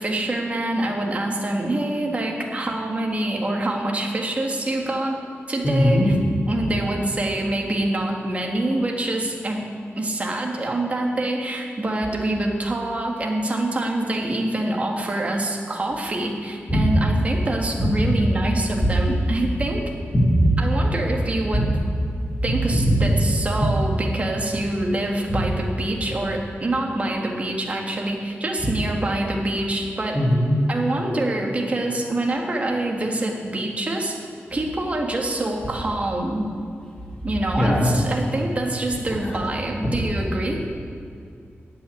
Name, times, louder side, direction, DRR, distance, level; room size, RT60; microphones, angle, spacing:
voice 1, 0.0-5.2 5.5-6.2 6.5-9.6 10.0-19.8 20.6-21.7 22.4-30.2 30.7-34.2 34.5-36.5 37.2-40.6, right 1 dB, 30° right, 0 dB, 1.6 m, -25 dB
voice 2, 5.6-6.1 16.7-16.8 20.1-20.4 21.5-21.6 22.9-23.0 30.1-30.5 37.6-37.9, equal, 20° left, -3 dB, 2.4 m, -19 dB
14.0 x 5.8 x 9.6 m, 2.4 s
wide cardioid pair, 165°, 4 cm